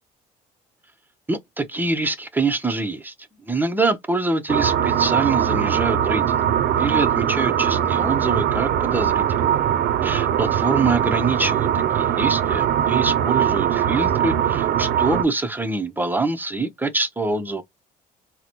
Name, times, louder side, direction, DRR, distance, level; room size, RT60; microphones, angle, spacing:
voice 1, 1.3-3.1 3.5-6.5 6.8-9.5 10.0-11.7 11.9-17.6, right 3 dB, 10° right, 0.6 m, -25 dB
sound 1, 4.5-15.2, right 9 dB, 65° right, 0.5 m, -21 dB
3.8 x 2.1 x 2.9 m
cardioid pair, 110°, 17 cm